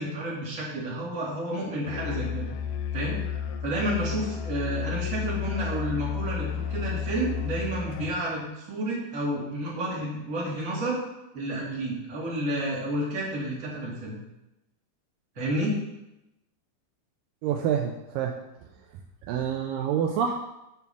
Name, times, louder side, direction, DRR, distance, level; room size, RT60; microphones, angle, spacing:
voice 1, 0.0-2.5 2.9-3.2 3.6-11.0 11.3-14.2 15.4-15.7, right 1 dB, 30° right, -5 dB, 1.8 m, -30 dB
Musical instrument, 1.9-8.2, left 8 dB, 85° left, 1.9 m, -32 dB
voice 2, 17.4-18.3 19.2-20.3, right 8 dB, 90° right, 3 dB, 1.9 m, -27 dB
7.1 x 4.5 x 6.8 m, 0.92 s
omnidirectional pair, 4.6 m